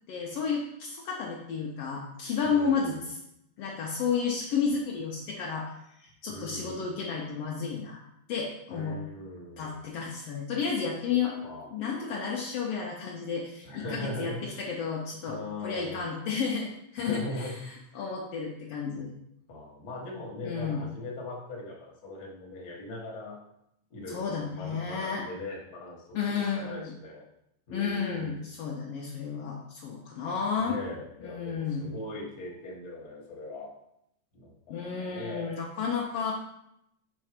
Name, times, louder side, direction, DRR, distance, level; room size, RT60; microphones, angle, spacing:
voice 1, 0.1-3.2 3.6-8.0 8.3-9.0 9.6-11.4 11.7-19.1 20.4-20.8 24.1-25.2 26.1-26.9 27.7-30.8 31.2-31.9 34.7-36.3, left 6 dB, 85° left, -2 dB, 1.3 m, -32 dB
voice 2, 2.4-3.0 4.7-4.8 6.3-6.9 8.7-9.8 11.1-11.7 13.6-14.4 15.3-16.1 17.0-17.6 19.0-19.1 19.5-23.4 23.9-27.2 27.7-28.4 30.6-33.7 34.3-35.5, left 1 dB, 45° left, -2 dB, 1.3 m, -40 dB
6.1 x 4.3 x 5.0 m, 0.80 s
omnidirectional pair, 3.8 m